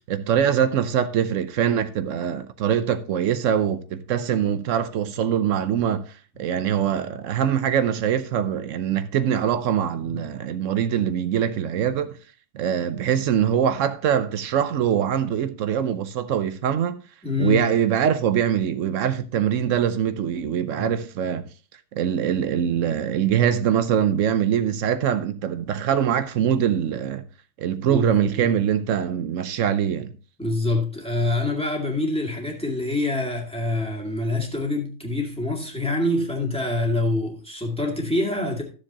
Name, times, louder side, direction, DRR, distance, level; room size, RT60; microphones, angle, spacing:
voice 1, 0.1-6.0 6.4-12.2 12.5-17.0 17.4-21.5 21.9-27.3 27.6-30.2, right 9 dB, 85° right, 1.1 m, -23 dB
voice 2, 17.2-17.6 20.7-20.9 27.9-28.5 30.4-38.6, left 2 dB, 5° left, 2.1 m, -25 dB
13.5 x 7.2 x 2.9 m
omnidirectional pair, 1.3 m